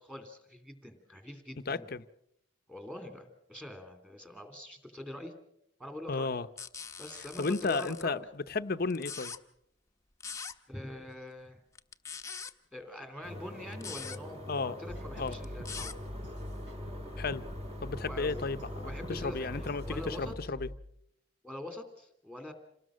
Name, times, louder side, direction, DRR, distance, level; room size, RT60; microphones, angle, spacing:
voice 1, 0.0-1.9 2.7-5.3 5.8-6.3 7.0-8.2 10.7-11.6 12.7-16.0 18.0-18.4 18.7-20.4 21.4-22.5, left 1 dB, 10° right, 6 dB, 2.9 m, -44 dB
voice 2, 1.7-2.0 6.1-6.5 7.4-8.2 8.5-9.3 14.5-14.8 15.2-15.4 17.2-17.4 17.8-20.7, left 4 dB, 55° left, 13 dB, 0.8 m, -33 dB
sound 1, 6.6-8.0 8.9-9.4 10.2-10.5 11.7-12.5 13.7-14.2 15.2-15.9, left 6 dB, 15° left, 0.9 m, -42 dB
sound 2, 13.2-20.3, left 1 dB, 35° right, 3.1 m, -44 dB
sound 3, 14.9-20.8, left 1 dB, 70° right, 3.6 m, -44 dB
27.5 x 19.0 x 6.3 m, 0.76 s
head